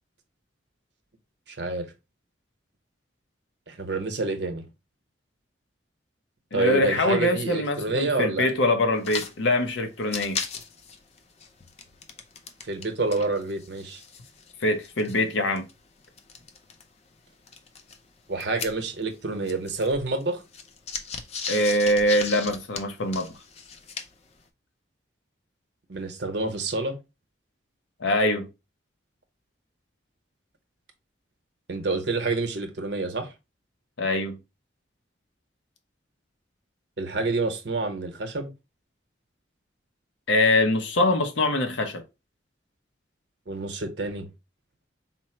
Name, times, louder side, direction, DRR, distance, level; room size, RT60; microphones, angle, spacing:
voice 1, 1.5-1.9 3.7-4.7 6.5-8.5 12.6-14.0 18.3-20.4 25.9-27.0 31.7-33.3 37.0-38.5 43.5-44.3, right 3 dB, 65° right, 0.8 m, -28 dB
voice 2, 6.5-10.4 14.6-15.6 21.5-23.3 28.0-28.5 34.0-34.4 40.3-42.0, left 1 dB, 80° left, 0.8 m, -23 dB
sound 1, 9.0-9.3 9.6-9.7 10.0-12.9 13.1-16.8 17.5-19.2 19.4-24.3, left 5 dB, 35° left, 0.5 m, -37 dB
4.3 x 2.0 x 4.3 m
head